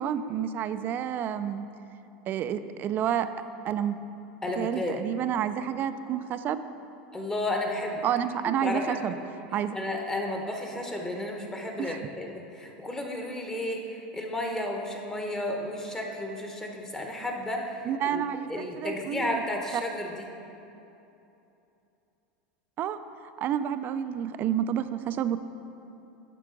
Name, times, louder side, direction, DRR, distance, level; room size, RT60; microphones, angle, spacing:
voice 1, 0.0-1.7 2.3-3.3 3.6-4.0 4.6-6.6 8.0-9.1 9.5-9.8 11.8-12.0 17.9-19.4 22.8-23.0 23.4-25.4, right 9 dB, 40° right, 11 dB, 0.4 m, -29 dB
voice 2, 4.4-5.0 7.1-8.0 8.4-9.2 9.7-18.2 18.5-20.3, left 1 dB, 10° left, 1 dB, 1.0 m, -33 dB
12.5 x 4.5 x 3.8 m, 2.9 s
supercardioid pair, 115°, 5 cm